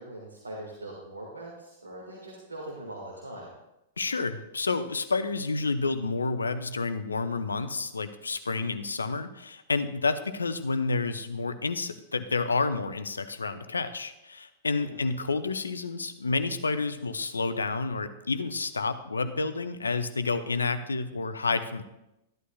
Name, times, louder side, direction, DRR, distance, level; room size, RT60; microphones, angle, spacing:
voice 1, 0.0-3.5 14.8-15.0, right 1 dB, 80° right, -2 dB, 1.8 m, -41 dB
voice 2, 4.0-21.8, left 3 dB, 80° left, 11 dB, 0.6 m, -30 dB
13.5 x 11.0 x 2.3 m, 0.89 s
figure-of-eight pair, 100°, 0 cm